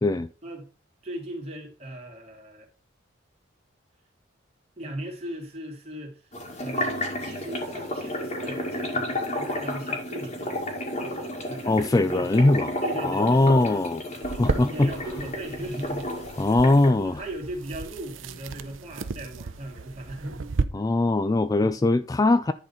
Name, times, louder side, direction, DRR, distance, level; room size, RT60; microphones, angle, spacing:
voice 1, 1.0-2.7 4.8-6.3 6.6-6.9 7.2-12.5 12.8-13.8 14.1-14.2 14.6-16.1 16.5-16.7 16.9-20.5 21.6-21.8, right 1 dB, 30° right, 2.7 m, -38 dB
sound 1, 6.3-16.9, left 1 dB, 35° left, 2.1 m, -32 dB
voice 2, 11.6-12.7 13.0-14.9 16.4-17.2 20.7-22.5, left 2 dB, 20° left, 0.3 m, -21 dB
sound 2, 14.2-20.6, right 4 dB, 85° right, 0.7 m, -34 dB
10.5 x 4.0 x 5.6 m
head